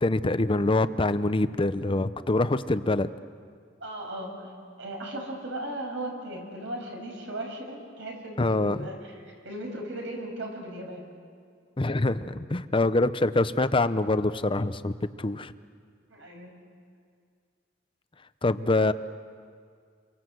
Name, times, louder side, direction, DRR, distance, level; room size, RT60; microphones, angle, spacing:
voice 1, 0.0-3.1 8.4-8.9 11.8-14.9 15.2-15.5 18.4-18.9, left 2 dB, 30° left, 12 dB, 0.7 m, -25 dB
voice 2, 3.8-4.5 4.8-9.0 9.4-11.0 16.1-16.5, right 1 dB, 75° right, 1 dB, 6.5 m, -37 dB
29.0 x 24.0 x 7.8 m, 2.1 s
head